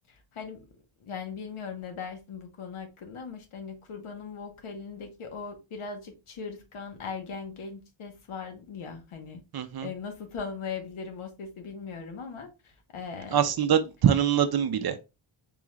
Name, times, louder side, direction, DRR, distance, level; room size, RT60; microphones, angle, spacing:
voice 1, 0.1-0.7 1.0-9.4 9.8-13.5, left 5 dB, 75° left, 1.1 m, -39 dB
voice 2, 9.5-9.9 13.3-15.0, right 9 dB, 50° right, 0.5 m, -24 dB
3.8 x 2.4 x 3.1 m
wide cardioid pair, 150°, 50 cm